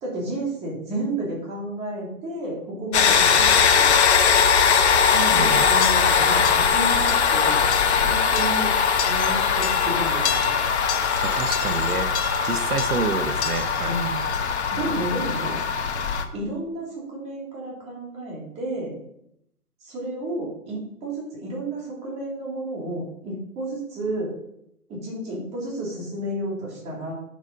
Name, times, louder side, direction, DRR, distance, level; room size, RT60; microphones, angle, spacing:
voice 1, 0.0-3.9 5.1-7.6 8.0-8.7 9.1-10.7 13.8-14.2 14.7-15.5 16.3-18.9 19.8-24.3 24.9-27.1, right 1 dB, 15° right, -3 dB, 2.8 m, -31 dB
sound 1, 2.9-16.3, left 6 dB, 45° left, 1.2 m, -20 dB
voice 2, 5.3-5.7 11.2-12.1 12.4-14.0, right 5 dB, 80° right, 9 dB, 1.1 m, -28 dB
9.0 x 7.3 x 5.4 m, 0.77 s
hypercardioid pair, 150°, 45 cm